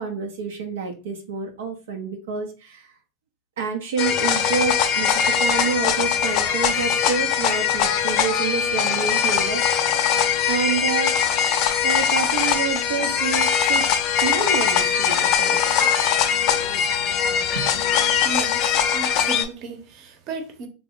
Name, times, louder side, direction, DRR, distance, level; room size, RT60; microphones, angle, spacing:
voice 1, 0.0-2.9 3.6-10.1 10.5-11.2 11.8-13.9 14.2-15.9 17.5-17.9, right 5 dB, 85° right, 0.6 m, -28 dB
sound 1, 4.0-19.5, left 8 dB, 50° left, 0.5 m, -21 dB
voice 2, 18.2-20.7, right 4 dB, 50° right, 0.8 m, -34 dB
3.5 x 2.0 x 3.6 m
supercardioid pair, 120°, 0 cm